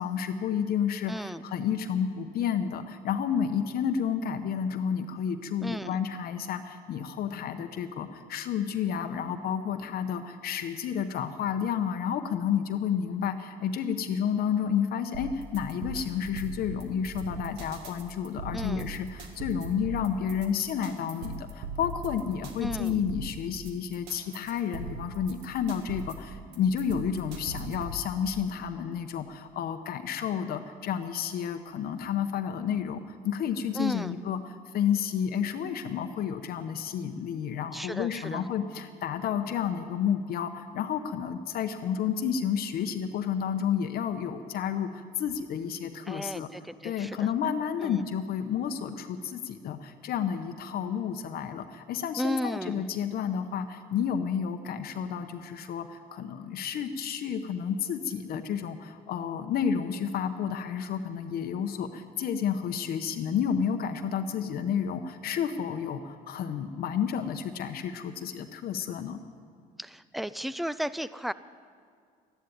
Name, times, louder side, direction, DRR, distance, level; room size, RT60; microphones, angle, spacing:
voice 1, 0.0-33.0 33.2-46.5 46.8-69.2, left 8 dB, 65° left, 7 dB, 0.9 m, -31 dB
voice 2, 1.1-1.4 5.6-6.0 18.5-18.9 22.6-23.0 33.7-34.2 37.7-38.4 46.1-47.3 47.8-48.1 52.2-52.9 69.8-71.3, equal, ahead, 16 dB, 0.4 m, -34 dB
sound 1, 15.1-28.1, right 2 dB, 90° right, 1.9 m, -40 dB
13.5 x 10.5 x 9.6 m, 2.2 s
cardioid pair, 110°, 17 cm